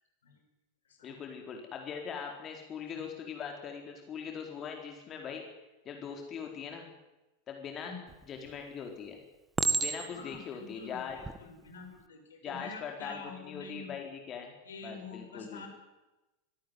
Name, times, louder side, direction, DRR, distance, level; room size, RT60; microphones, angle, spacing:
voice 1, 1.0-5.4 5.8-6.9 7.5-7.9 8.3-9.2 9.8-11.2 12.4-14.6 14.8-15.7, left 7 dB, 30° left, 3 dB, 4.4 m, -41 dB
Chink clink, 8.1-8.6 9.6-10.4 11.1-11.4, right 4 dB, 10° right, 1.7 m, -31 dB
voice 2, 10.1-14.0 14.6-15.7, left 4 dB, 65° left, 5 dB, 6.1 m, -47 dB
24.5 x 17.5 x 9.7 m, 1.0 s
figure-of-eight pair, 90°, 0 cm